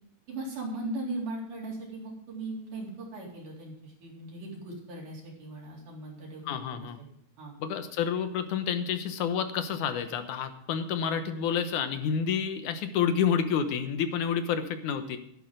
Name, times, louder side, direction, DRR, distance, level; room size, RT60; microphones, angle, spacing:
voice 1, 0.3-6.9 7.4-7.5, right 2 dB, 80° right, -3 dB, 5.2 m, -38 dB
voice 2, 6.5-7.0 7.6-15.2, left 7 dB, 85° left, 9 dB, 2.5 m, -29 dB
12.0 x 11.0 x 5.0 m, 0.69 s
omnidirectional pair, 3.5 m